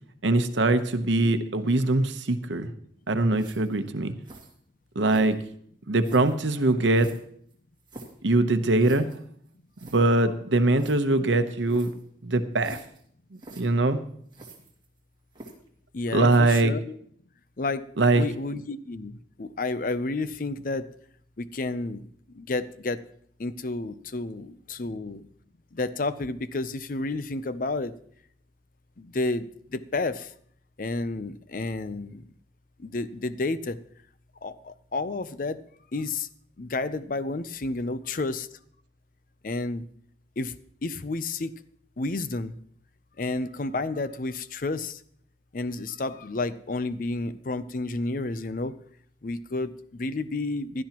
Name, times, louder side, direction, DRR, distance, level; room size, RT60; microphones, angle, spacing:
voice 1, 0.2-2.7 3.1-4.1 4.9-5.4 5.9-7.1 8.2-9.1 9.8-11.9 12.2-12.8 13.6-14.0 16.1-16.7 18.0-18.2, right 2 dB, 85° right, 9 dB, 0.9 m, -22 dB
sound 1, 3.3-3.8 4.2-4.5 5.0-5.5 6.0-6.4 6.9-8.2 8.8-9.2 9.5-9.6 9.7-10.0 10.7-10.9 11.7-12.0 12.6-13.0 13.3-13.6 14.3-15.0 15.3-15.7, right 2 dB, 25° right, 2.3 m, -46 dB
voice 2, 15.9-17.0 17.6-17.8 18.2-20.9 21.4-22.1 22.3-23.0 23.4-25.2 25.7-27.9 29.0-30.3 30.8-32.2 32.8-33.8 34.4-35.6 35.9-36.3 36.6-38.5 39.4-39.8 40.4-40.5 40.8-41.5 42.0-42.5 43.2-45.0 45.5-48.7 49.2-50.8, left 3 dB, 45° left, 14 dB, 0.5 m, -31 dB
16.0 x 12.0 x 3.0 m, 0.63 s
head